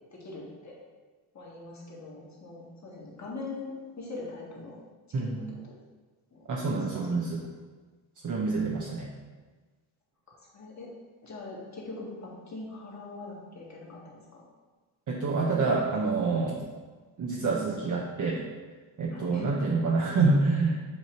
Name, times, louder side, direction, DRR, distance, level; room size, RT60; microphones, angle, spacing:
voice 1, 0.1-0.8 1.3-4.8 5.2-5.3 6.3-7.1 10.4-10.9 11.2-14.4 19.1-19.5, left 3 dB, 35° left, -4 dB, 1.9 m, -42 dB
voice 2, 5.1-5.5 6.4-7.4 8.2-9.1 15.1-16.7 17.2-18.4 19.0-20.8, right 3 dB, 40° right, -2 dB, 0.8 m, -27 dB
7.5 x 2.7 x 4.6 m, 1.4 s
supercardioid pair, 65°, 46 cm